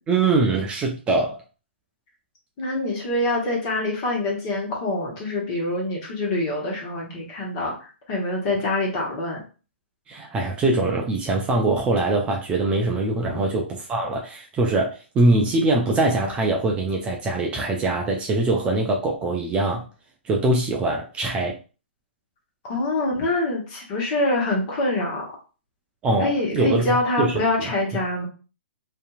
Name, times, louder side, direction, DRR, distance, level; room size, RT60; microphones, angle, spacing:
voice 1, 0.1-1.4 10.1-19.8 20.2-21.6 26.0-27.7, right 2 dB, 15° right, 0.4 m, -23 dB
voice 2, 2.6-7.8 8.1-9.4 13.2-13.4 22.6-25.3 26.2-28.3, left 2 dB, 40° left, 1.2 m, -25 dB
2.7 x 2.6 x 2.3 m
hypercardioid pair, 130°, 6 cm